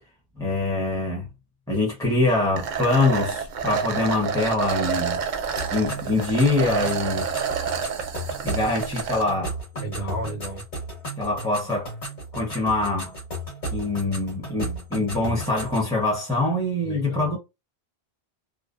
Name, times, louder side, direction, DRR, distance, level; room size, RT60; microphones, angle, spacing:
voice 1, 0.4-1.3 1.7-5.2 5.7-7.3 8.4-9.5 11.2-11.9 12.3-13.1 13.7-17.4, left 2 dB, 5° left, 0.7 m, -24 dB
sound 1, 2.6-9.2, right 6 dB, 55° right, 0.6 m, -28 dB
sound 2, 5.6-15.9, right 1 dB, 45° left, 1.2 m, -35 dB
voice 2, 9.7-10.6 16.8-17.4, right 1 dB, 80° left, 1.3 m, -33 dB
2.5 x 2.1 x 2.4 m
omnidirectional pair, 1.0 m